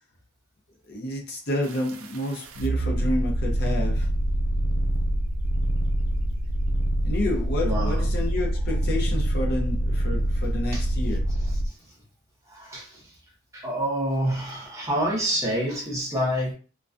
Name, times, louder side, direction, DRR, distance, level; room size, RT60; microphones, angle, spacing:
voice 1, 0.9-4.1 7.0-11.3, left 1 dB, 50° left, 0.6 m, -30 dB
sound 1, 1.6-11.7, right 1 dB, 75° right, 0.4 m, -25 dB
voice 2, 7.6-8.1 10.7-10.9 11.4-11.7 12.5-13.2 13.5-16.5, equal, 15° right, 0.7 m, -28 dB
2.2 x 2.2 x 2.5 m
head